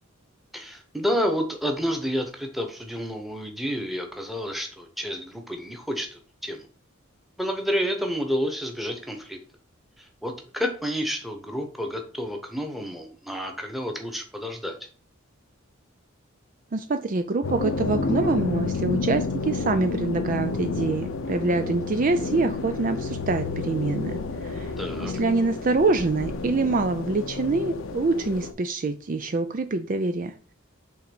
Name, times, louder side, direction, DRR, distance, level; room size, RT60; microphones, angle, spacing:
voice 1, 0.5-6.7 7.4-9.4 10.0-14.8 24.8-25.1, equal, ahead, 4 dB, 1.2 m, -30 dB
voice 2, 16.7-24.7 25.0-30.3, right 3 dB, 40° right, 9 dB, 0.4 m, -25 dB
sound 1, 17.4-28.5, left 4 dB, 75° left, 0.7 m, -30 dB
5.8 x 3.9 x 6.0 m, 0.41 s
head